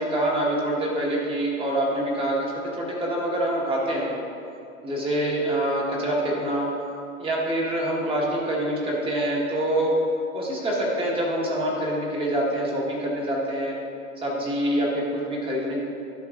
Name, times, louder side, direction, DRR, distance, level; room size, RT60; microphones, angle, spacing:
voice 1, 0.0-4.1 4.8-6.7 7.2-9.9 10.3-13.7 14.2-15.8, right 1 dB, 15° right, -3 dB, 1.3 m, -25 dB
12.5 x 5.3 x 2.5 m, 2.5 s
hypercardioid pair, 135°, 41 cm